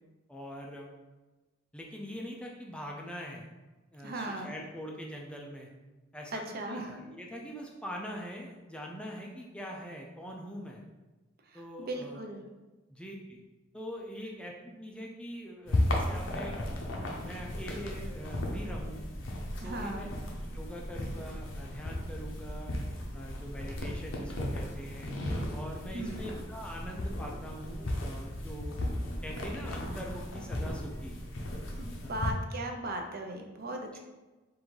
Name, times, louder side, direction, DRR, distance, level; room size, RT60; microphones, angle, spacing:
voice 1, 0.3-0.9 1.7-3.5 3.9-5.7 6.1-10.8 11.5-12.2 12.9-13.4 13.7-16.6 17.0-19.0 19.6-20.1 20.5-22.7 23.1-25.1 25.5-28.8 29.2-31.2 32.0-32.1 33.9-34.0, equal, 5° left, -1 dB, 0.4 m, -43 dB
voice 2, 4.0-4.5 6.3-7.0 11.5-12.4 19.6-20.1 25.9-26.3 31.8-34.0, right 1 dB, 50° right, 3 dB, 0.5 m, -38 dB
sound 1, 15.7-32.3, left 1 dB, 70° left, 0.7 m, -35 dB
3.7 x 2.6 x 4.6 m, 1.2 s
head